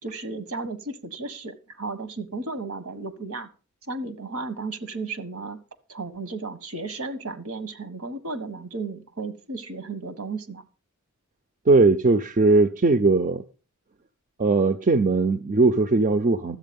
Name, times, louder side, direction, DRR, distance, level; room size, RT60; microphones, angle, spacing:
voice 1, 0.0-3.5 3.9-5.6 5.9-10.6, right 3 dB, 75° right, 1.5 m, -34 dB
voice 2, 11.7-13.4 14.4-16.6, right 3 dB, 35° right, 0.6 m, -19 dB
13.0 x 8.3 x 5.3 m
head